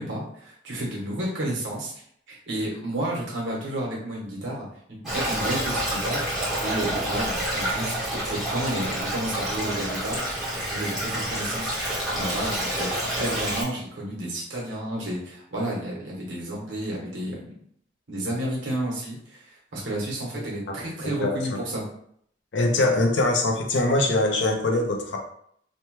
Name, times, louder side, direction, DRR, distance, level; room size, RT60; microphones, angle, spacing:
voice 1, 0.0-1.9 2.3-10.2 10.5-17.5 18.1-21.8, right 1 dB, 90° right, -3 dB, 1.1 m, -31 dB
Stream, 5.0-13.6, right 1 dB, ahead, 0.9 m, -28 dB
voice 2, 21.2-21.6 22.5-25.2, left 2 dB, 75° left, 2 dB, 0.6 m, -22 dB
2.9 x 2.2 x 3.0 m, 0.66 s
head